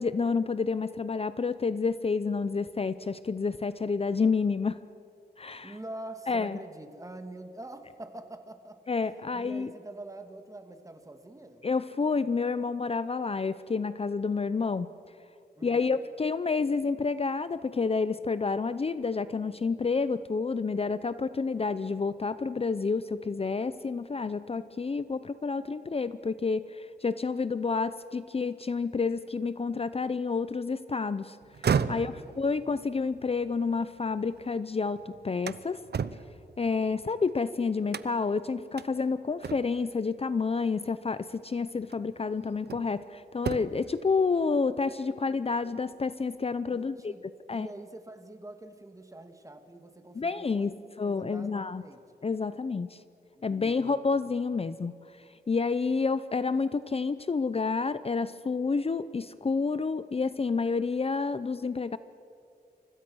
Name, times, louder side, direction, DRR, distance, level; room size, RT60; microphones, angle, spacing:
voice 1, 0.0-4.8 5.4-5.8 6.3-6.6 8.9-9.7 11.6-14.9 15.6-31.4 31.9-35.8 36.6-47.1 47.5-47.7 50.2-51.8 52.2-53.0 53.4-62.0, left 4 dB, 35° left, 14 dB, 0.6 m, -29 dB
voice 2, 5.6-8.8 9.3-11.6 15.6-16.0 31.9-32.3 46.7-52.0 53.3-54.0 54.5-54.6, right 1 dB, 20° right, 7 dB, 2.0 m, -45 dB
sound 1, 31.4-34.6 35.0-37.3 37.9-38.4 38.8-38.9 39.4-39.9 41.2-41.3 41.9-43.0 43.3-43.9, right 6 dB, 80° right, 0.8 m, -34 dB
30.0 x 25.0 x 6.3 m, 2.6 s
wide cardioid pair, 130°, 17 cm